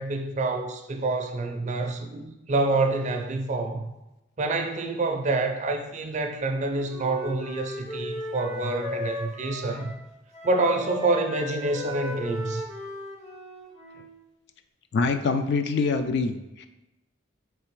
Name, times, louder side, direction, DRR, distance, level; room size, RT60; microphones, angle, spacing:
voice 1, 0.0-3.9 4.4-9.9 10.4-12.6, right 2 dB, 35° right, 0.4 m, -27 dB
Wind instrument woodwind instrument, 6.4-10.1 10.3-14.3, left 3 dB, 30° left, 0.7 m, -37 dB
voice 2, 14.9-16.7, left 4 dB, 55° left, 0.3 m, -25 dB
3.4 x 3.2 x 4.5 m
head